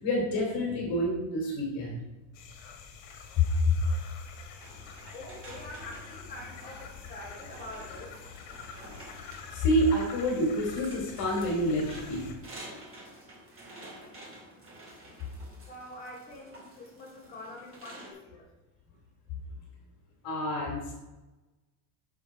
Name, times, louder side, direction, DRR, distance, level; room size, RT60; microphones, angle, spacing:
voice 1, 0.0-1.9 3.4-3.7 9.5-12.3 20.2-20.9, left 1 dB, 45° left, -1 dB, 2.9 m, -27 dB
sound 1, 2.3-12.3, left 5 dB, 65° left, 1.9 m, -46 dB
sound 2, 4.6-18.1, right 1 dB, 25° right, 2.4 m, -50 dB
voice 2, 5.1-8.2 15.7-18.5, left 1 dB, 20° left, -6 dB, 3.1 m, -45 dB
7.2 x 7.0 x 4.8 m, 1.1 s
cardioid pair, 150°, 49 cm